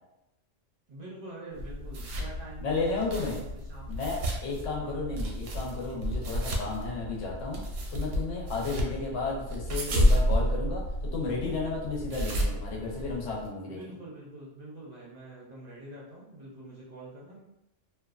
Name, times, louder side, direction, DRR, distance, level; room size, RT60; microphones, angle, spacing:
voice 1, 0.9-3.4 3.7-3.9 4.7-5.1 8.7-8.9 13.7-17.4, right 1 dB, 45° right, -6 dB, 0.6 m, -46 dB
sound 1, 1.6-13.5, equal, 85° right, 0.9 m, -31 dB
voice 2, 2.6-3.4 3.9-13.9, left 3 dB, 75° left, -2 dB, 1.0 m, -33 dB
2.6 x 2.2 x 2.3 m, 0.91 s
omnidirectional pair, 1.3 m